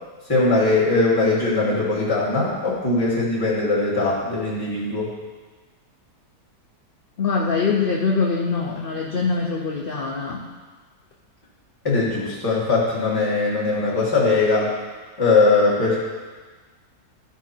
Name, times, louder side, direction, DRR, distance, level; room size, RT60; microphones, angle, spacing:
voice 1, 0.3-5.1 11.8-14.7 15.2-16.0, left 3 dB, 10° left, -7 dB, 1.9 m, -20 dB
voice 2, 7.2-10.4, left 4 dB, 55° left, -2 dB, 0.6 m, -23 dB
13.0 x 4.8 x 4.5 m, 1.4 s
omnidirectional pair, 1.9 m